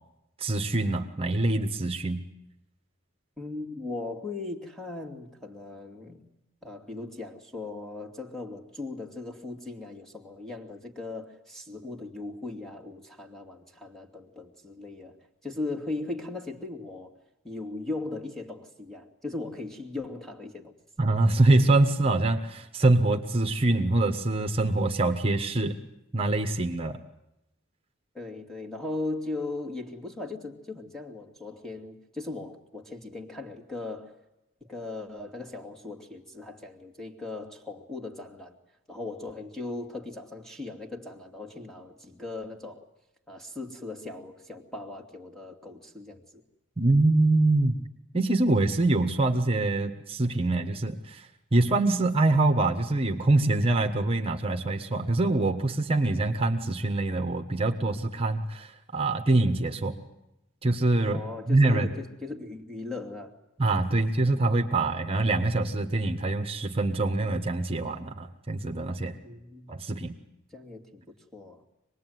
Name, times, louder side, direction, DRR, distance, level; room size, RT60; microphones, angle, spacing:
voice 1, 0.4-2.2 21.0-25.8 26.1-27.0 46.8-47.8 48.1-60.0 60.6-61.2 61.5-61.9 63.6-69.1 69.7-70.1, right 2 dB, 25° right, 5 dB, 1.5 m, -24 dB
voice 2, 3.4-6.2 6.6-15.2 15.4-17.2 17.4-20.8 28.1-34.2 34.6-38.6 38.9-42.9 43.3-46.4 61.1-63.4 69.2-69.9 70.5-71.6, left 2 dB, ahead, 3 dB, 2.6 m, -38 dB
26.0 x 20.5 x 9.4 m, 0.91 s
head